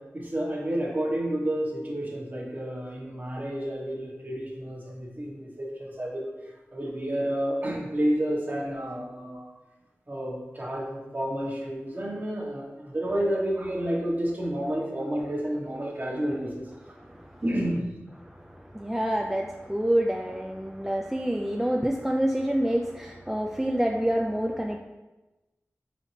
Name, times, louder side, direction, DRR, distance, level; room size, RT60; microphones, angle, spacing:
voice 1, 0.0-6.3 6.7-9.5 10.1-16.7 17.4-17.9, right 1 dB, 35° right, -2 dB, 1.0 m, -30 dB
voice 2, 17.0-17.4 18.2-24.8, equal, 5° right, 1 dB, 0.3 m, -27 dB
4.2 x 3.8 x 3.1 m, 1.1 s
wide cardioid pair, 50°, 5 cm